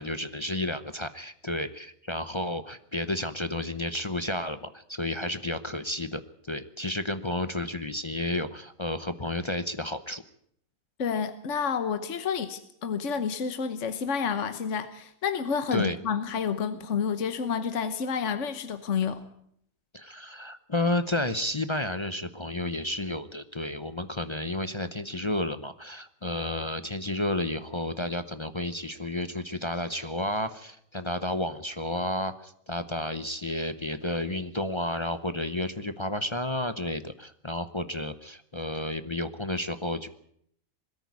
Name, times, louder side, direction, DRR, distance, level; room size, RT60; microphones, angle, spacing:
voice 1, 0.0-6.2 6.5-10.2 15.7-16.0 19.9-40.1, left 1 dB, 25° left, 10 dB, 0.7 m, -31 dB
voice 2, 11.0-19.2, left 6 dB, 60° left, 10 dB, 1.4 m, -29 dB
21.0 x 13.5 x 9.5 m, 0.70 s
omnidirectional pair, 1.4 m